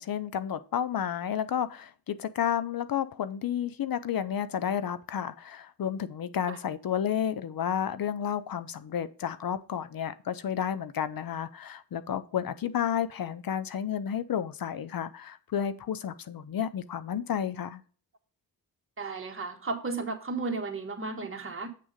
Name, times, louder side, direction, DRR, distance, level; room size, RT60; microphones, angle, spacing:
voice 1, 0.0-17.8, left 9 dB, 70° left, 0.6 m, -31 dB
voice 2, 19.0-21.7, right 3 dB, 35° right, 1.4 m, -34 dB
8.5 x 3.6 x 6.5 m
wide cardioid pair, 110°, 36 cm